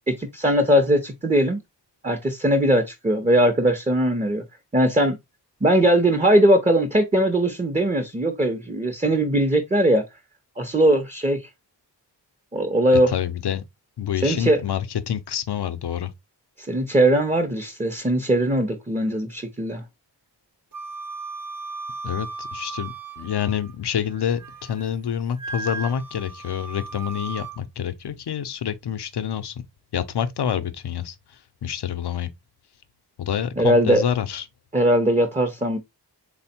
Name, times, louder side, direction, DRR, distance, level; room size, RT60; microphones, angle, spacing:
voice 1, 0.1-1.6 2.0-4.4 4.7-5.2 5.6-10.0 10.6-11.4 12.5-13.1 14.2-14.6 16.6-19.8 33.6-34.0 34.7-35.8, right 1 dB, 15° right, 0.6 m, -20 dB
voice 2, 13.1-13.6 14.0-16.1 22.0-29.5 29.9-31.2 31.6-32.3 33.2-34.4, left 9 dB, 70° left, 0.6 m, -27 dB
Wind instrument woodwind instrument, 20.7-23.7 24.1-24.9 25.4-27.6, right 3 dB, 50° right, 0.8 m, -36 dB
3.4 x 2.1 x 4.3 m
cardioid pair, 45°, 42 cm